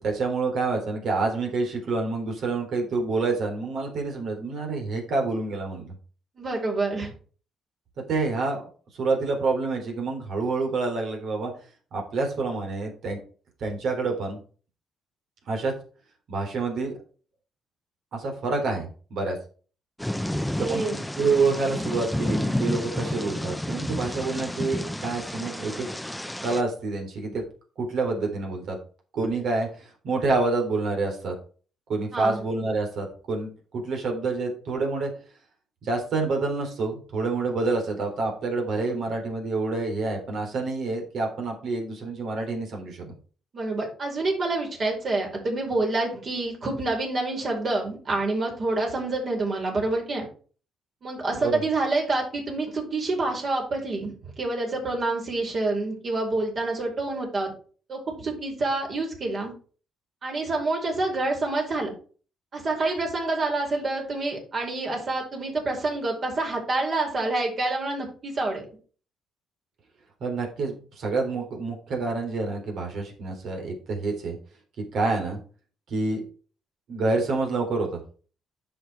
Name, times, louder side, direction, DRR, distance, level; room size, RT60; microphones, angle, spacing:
voice 1, 0.0-5.9 8.1-11.5 11.9-13.2 13.6-14.4 15.5-15.7 16.3-16.9 18.1-19.4 20.6-20.8 21.2-25.9 26.4-27.4 27.8-28.8 29.1-31.4 31.9-35.1 35.8-43.1 51.4-51.6 70.2-74.4 74.8-75.4 75.9-76.2 76.9-78.0, right 3 dB, 70° right, 2 dB, 3.7 m, -27 dB
voice 2, 6.4-7.1 20.3-21.0 32.1-32.4 43.5-50.2 51.0-57.5 57.9-59.5 60.2-61.9 62.5-68.6, right 2 dB, 45° right, 0 dB, 4.9 m, -27 dB
Thunder / Rain, 20.0-26.6, left 1 dB, 5° left, 0.6 m, -30 dB
10.0 x 6.4 x 4.7 m, 0.40 s
cardioid pair, 90°, 0 cm